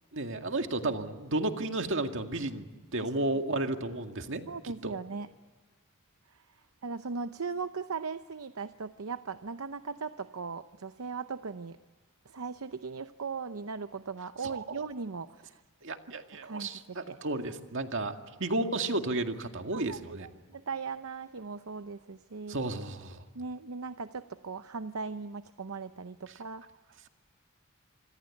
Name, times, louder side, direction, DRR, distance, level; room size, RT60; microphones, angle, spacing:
voice 1, 0.1-4.9 14.4-14.8 15.8-20.3 22.5-23.2, right 2 dB, 60° right, 5 dB, 2.1 m, -33 dB
voice 2, 4.5-5.3 6.3-6.4 6.8-11.8 12.3-15.6 16.4-17.2 19.7-22.6 23.3-26.6, right 4 dB, 80° right, 10 dB, 0.7 m, -38 dB
26.0 x 26.0 x 8.5 m, 1.4 s
head